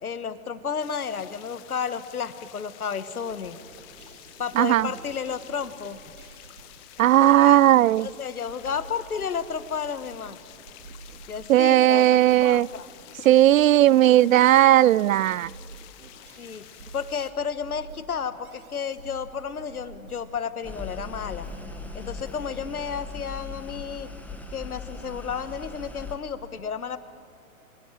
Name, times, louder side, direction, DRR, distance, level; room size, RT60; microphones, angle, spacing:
voice 1, 0.0-3.6 4.4-6.0 7.2-7.6 8.0-10.4 11.3-12.0 12.4-12.9 16.4-16.7 16.9-21.5 21.9-24.1 24.5-27.0, left 6 dB, 90° left, 12 dB, 1.5 m, -32 dB
sound 1, 0.8-17.3, left 14 dB, 30° left, 1.4 m, -50 dB
sound 2, 3.2-23.1, right 4 dB, 90° right, 2.4 m, -49 dB
voice 2, 4.6-4.9 7.0-8.1 11.5-12.7 13.2-15.5, right 13 dB, 65° right, 25 dB, 0.5 m, -17 dB
sound 3, 20.6-26.2, left 4 dB, 5° left, 1.7 m, -39 dB
25.5 x 18.0 x 9.1 m, 2.3 s
hypercardioid pair, 135°, 43 cm